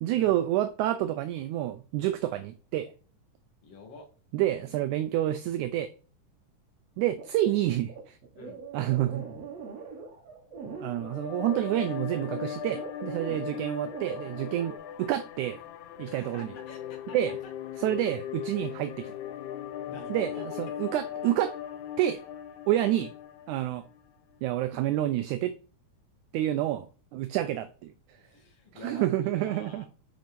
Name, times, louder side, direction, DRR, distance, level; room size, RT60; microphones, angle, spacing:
voice 1, 0.0-2.9 4.3-5.9 7.0-8.2 8.7-9.2 10.8-15.6 16.0-16.5 17.1-17.4 17.8-19.1 20.1-20.3 20.6-21.5 22.0-22.2 22.7-23.1 23.5-23.8 24.4-25.5 26.3-28.2 28.7-29.9, right 13 dB, 80° right, 1.9 m, -28 dB
voice 2, 3.6-4.1 8.4-8.6 13.2-13.4 16.1-17.2 19.9-20.8 23.0-23.1 28.2-29.9, left 3 dB, 55° left, 2.3 m, -47 dB
sound 1, 7.2-14.8, right 5 dB, 55° right, 2.4 m, -42 dB
sound 2, 10.6-24.0, left 10 dB, 75° left, 2.0 m, -39 dB
6.2 x 5.2 x 5.2 m
omnidirectional pair, 3.7 m